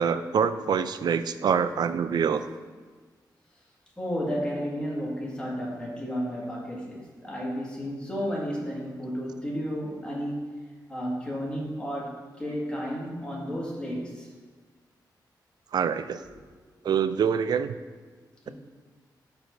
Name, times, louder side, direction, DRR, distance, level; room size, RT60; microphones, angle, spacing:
voice 1, 0.0-2.4 15.7-16.2 16.8-17.8, right 7 dB, 65° right, 11 dB, 0.4 m, -25 dB
voice 2, 4.0-10.6 10.9-14.3 16.2-16.3 18.4-18.5, equal, 15° left, -4 dB, 1.8 m, -32 dB
13.5 x 4.8 x 2.6 m, 1.4 s
wide cardioid pair, 135°, 8 cm